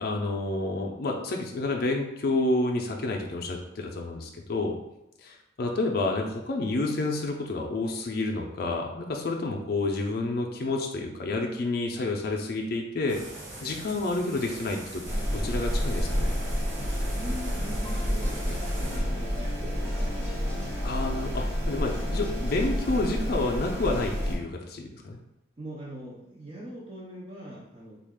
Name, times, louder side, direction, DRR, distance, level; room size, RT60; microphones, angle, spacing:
voice 1, 0.0-4.8 5.2-13.2 13.6-15.0 15.3-16.3 20.8-25.2, left 2 dB, 60° left, 1 dB, 0.5 m, -29 dB
sound 1, 13.1-19.0, right 1 dB, 80° right, 0.8 m, -42 dB
sound 2, 15.0-24.4, equal, 15° right, 1.3 m, -29 dB
voice 2, 16.8-20.6 25.6-28.0, right 1 dB, 30° right, -6 dB, 0.6 m, -42 dB
sound 3, 17.1-24.1, equal, 10° left, 0.6 m, -43 dB
3.2 x 2.4 x 3.5 m, 0.85 s
head